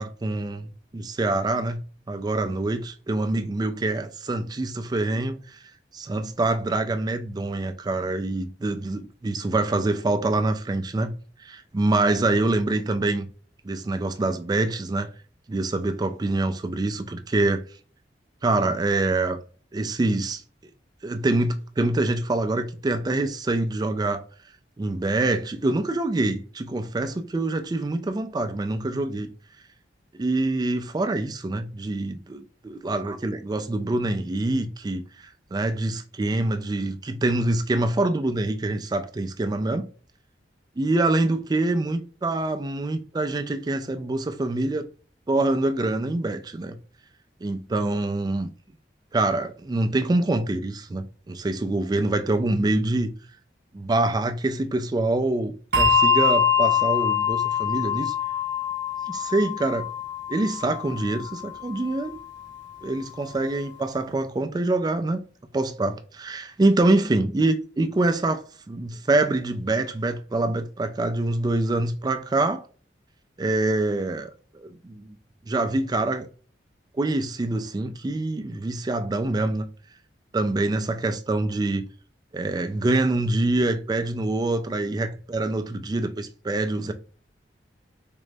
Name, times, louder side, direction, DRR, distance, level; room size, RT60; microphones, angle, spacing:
voice 1, 0.0-1.8 2.1-5.4 5.9-11.1 11.4-13.3 13.6-15.1 15.5-17.6 18.4-19.4 19.7-20.4 21.0-24.2 24.8-29.3 30.2-32.4 32.8-35.0 35.5-39.9 40.8-44.9 45.3-46.8 47.4-48.5 49.1-53.1 53.7-58.1 59.1-59.9 60.3-62.2 62.8-65.2 65.5-72.6 73.4-74.3 74.5-75.2 75.5-76.3 77.0-79.7 80.3-81.9 82.3-86.9, right 2 dB, 20° right, 0.3 m, -25 dB
Bell, 55.7-62.6, left 6 dB, 70° right, 0.6 m, -24 dB
3.7 x 2.0 x 3.3 m
head